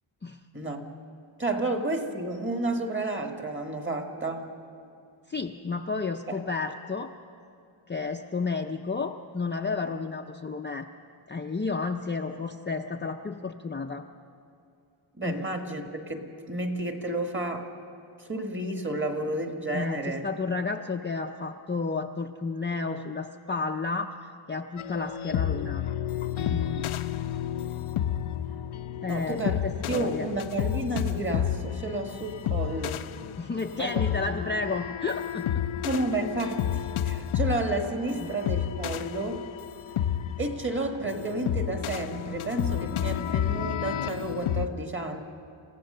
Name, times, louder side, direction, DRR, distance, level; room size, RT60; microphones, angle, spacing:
voice 1, 1.4-4.5 6.3-6.4 15.2-17.7 18.3-20.2 29.1-29.6 29.9-33.0 33.8-34.0 35.8-39.4 40.4-45.2, right 2 dB, 25° right, 4 dB, 1.6 m, -31 dB
voice 2, 5.3-7.1 7.9-10.9 11.3-14.1 15.2-15.4 19.7-25.8 26.5-26.9 29.0-30.3 33.4-35.7 38.2-38.3, left 4 dB, 25° left, 3 dB, 0.5 m, -32 dB
sound 1, 24.8-44.7, left 10 dB, 80° left, 0.6 m, -31 dB
27.5 x 15.5 x 6.7 m, 2.6 s
wide cardioid pair, 175°, 49 cm